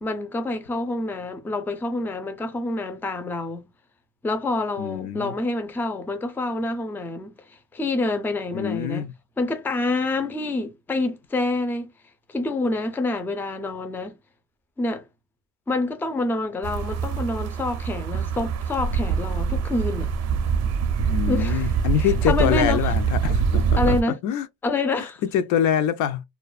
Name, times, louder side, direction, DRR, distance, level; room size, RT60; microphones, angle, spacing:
voice 1, 0.0-3.7 4.2-9.1 9.4-11.9 12.3-14.2 14.8-15.0 15.7-20.1 21.3-21.7 22.0-22.9 23.8-24.2 24.6-25.2, left 2 dB, 5° left, 0.3 m, -27 dB
voice 2, 4.8-5.3 8.5-9.1 21.1-24.0 24.2-24.5 25.3-26.2, left 9 dB, 75° left, 0.5 m, -24 dB
sound 1, 16.6-24.0, right 6 dB, 55° right, 0.5 m, -24 dB
2.4 x 2.2 x 2.3 m
cardioid pair, 125°, 31 cm